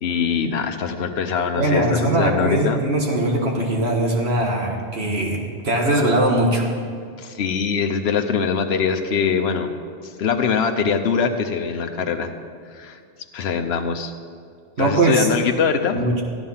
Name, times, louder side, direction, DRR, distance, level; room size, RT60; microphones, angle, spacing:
voice 1, 0.0-2.8 7.2-9.7 10.0-12.3 12.7-13.0 13.3-14.1 14.8-16.1, left 6 dB, 70° left, 4 dB, 1.0 m, -23 dB
voice 2, 1.6-5.4 5.6-6.7 14.8-15.3 15.9-16.2, right 1 dB, 70° right, 0 dB, 1.8 m, -20 dB
14.0 x 10.5 x 5.6 m, 2.2 s
omnidirectional pair, 1.1 m